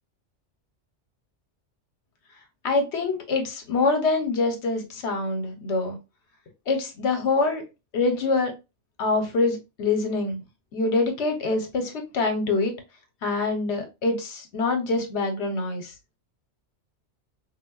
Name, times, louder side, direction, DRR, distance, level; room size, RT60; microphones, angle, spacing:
voice 1, 2.6-6.0 6.7-7.6 7.9-8.5 9.0-10.4 10.7-12.7 13.2-15.9, left 3 dB, 75° left, 5 dB, 0.9 m, -25 dB
3.5 x 2.1 x 2.3 m, 0.26 s
omnidirectional pair, 1.2 m